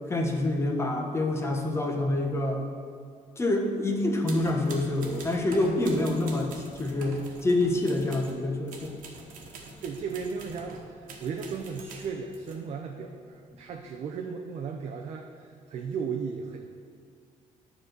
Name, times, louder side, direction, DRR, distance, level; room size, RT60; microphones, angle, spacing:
voice 1, 0.1-2.6 3.4-7.2 7.4-8.9, left 2 dB, 20° left, 2 dB, 1.0 m, -27 dB
sound 1, 4.3-8.4 8.7-12.6, right 3 dB, 75° right, 1.2 m, -45 dB
voice 2, 9.8-16.7, right 5 dB, 50° right, 2 dB, 0.6 m, -35 dB
9.7 x 4.1 x 6.7 m, 2.1 s
cardioid pair, 130°, 14 cm